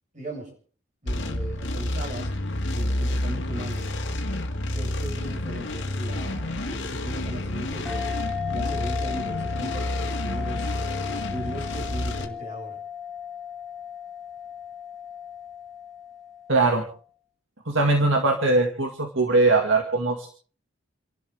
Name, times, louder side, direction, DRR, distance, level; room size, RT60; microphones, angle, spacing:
voice 1, 0.1-0.5 1.0-2.3 2.7-3.9 4.7-8.2 8.5-10.7 11.1-12.8, right 1 dB, 35° right, -1 dB, 7.5 m, -38 dB
sound 1, 1.1-12.3, left 1 dB, 65° left, 1.9 m, -29 dB
sound 2, 7.9-16.9, left 8 dB, ahead, 1.8 m, -36 dB
voice 2, 16.5-16.8 17.7-20.3, right 3 dB, 75° right, 2 dB, 2.0 m, -21 dB
29.5 x 12.0 x 3.6 m, 0.42 s
head